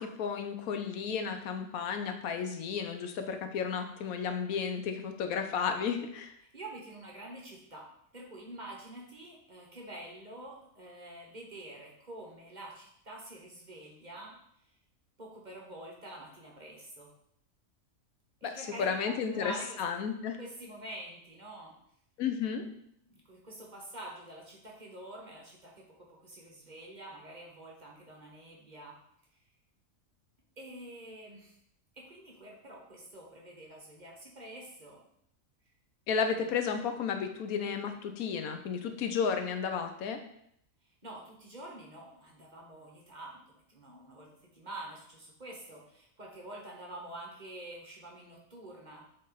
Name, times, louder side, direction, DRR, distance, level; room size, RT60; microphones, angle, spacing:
voice 1, 0.0-6.3 18.4-18.5 18.8-20.4 22.2-22.6 36.1-40.2, left 6 dB, 85° left, 6 dB, 1.2 m, -33 dB
voice 2, 6.5-7.9 8.1-14.4 15.2-17.1 18.4-19.8 20.4-21.8 23.1-29.0 30.6-31.6 31.9-35.0 36.4-36.5 41.0-43.4 43.7-49.1, right 1 dB, 35° right, -2 dB, 1.3 m, -47 dB
7.6 x 3.5 x 4.0 m, 0.71 s
omnidirectional pair, 1.5 m